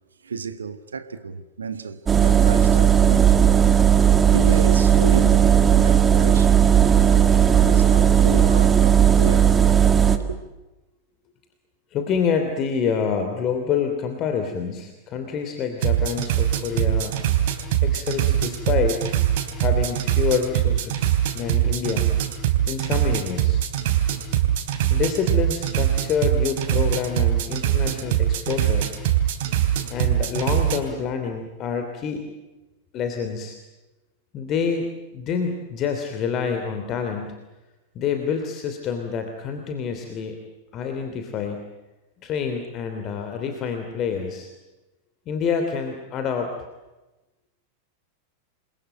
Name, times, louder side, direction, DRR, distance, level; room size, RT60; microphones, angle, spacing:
voice 1, 0.2-6.6 7.0-7.3 7.6-9.5 10.0-10.4, right 5 dB, 70° right, 1.3 m, -32 dB
sound 1, 2.1-10.2, right 8 dB, 20° right, 1.9 m, -16 dB
voice 2, 11.9-17.2 17.8-19.2 19.5-22.1 22.7-23.6 24.9-28.9 29.9-32.3 32.9-33.6 34.3-34.9 35.1-37.4 37.9-40.4 40.7-41.6 42.2-44.5 45.3-46.5, left 6 dB, 35° left, 3.0 m, -27 dB
sound 2, 15.8-30.8, right 11 dB, 50° right, 3.2 m, -22 dB
28.5 x 22.0 x 9.0 m
figure-of-eight pair, 90°, 0 cm